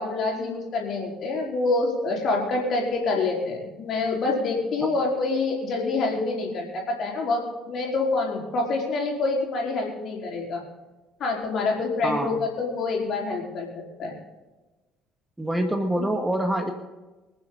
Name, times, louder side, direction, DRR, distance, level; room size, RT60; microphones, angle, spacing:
voice 1, 0.0-10.6 11.2-14.1 16.0-16.1, left 3 dB, 50° left, -1 dB, 4.8 m, -26 dB
voice 2, 12.0-12.4 15.4-16.7, right 1 dB, 10° right, 4 dB, 1.9 m, -25 dB
25.5 x 9.7 x 4.1 m, 1.2 s
figure-of-eight pair, 50°, 0 cm